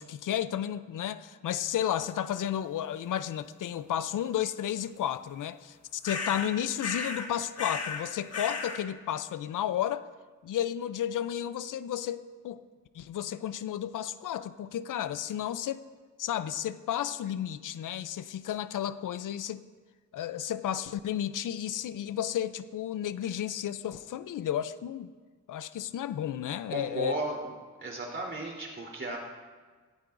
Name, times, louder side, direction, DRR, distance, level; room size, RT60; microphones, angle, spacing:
voice 1, 0.0-10.1 10.4-12.6 12.9-15.8 16.2-19.6 20.1-25.1 25.5-27.1, left 10 dB, 80° left, 14 dB, 0.6 m, -32 dB
sound 1, 6.0-6.5 6.8-7.3 7.6-8.0 8.3-8.8, left 4 dB, 50° left, 1.7 m, -34 dB
voice 2, 26.7-27.4 27.8-29.2, right 2 dB, 40° right, -2 dB, 3.5 m, -34 dB
17.5 x 14.5 x 2.6 m, 1.4 s
cardioid pair, 90°, 31 cm